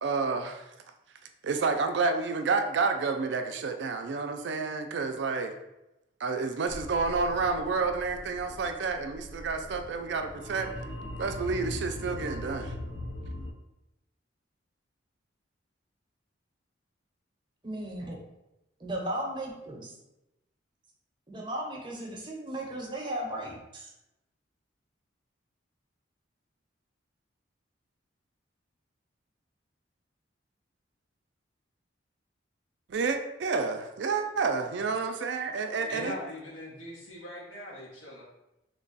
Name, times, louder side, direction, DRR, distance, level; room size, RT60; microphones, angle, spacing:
voice 1, 0.0-0.6 1.4-5.5 6.2-10.7 11.2-12.7 32.9-36.1, right 4 dB, 65° right, 5 dB, 0.4 m, -29 dB
sound 1, 6.7-13.5, left 1 dB, 65° left, 0.4 m, -40 dB
voice 2, 17.6-18.2 18.8-19.9 21.3-23.9, right 1 dB, 25° right, -1 dB, 0.7 m, -36 dB
voice 3, 35.9-38.2, left 1 dB, 90° left, -3 dB, 1.1 m, -40 dB
3.2 x 2.2 x 3.9 m, 0.90 s
head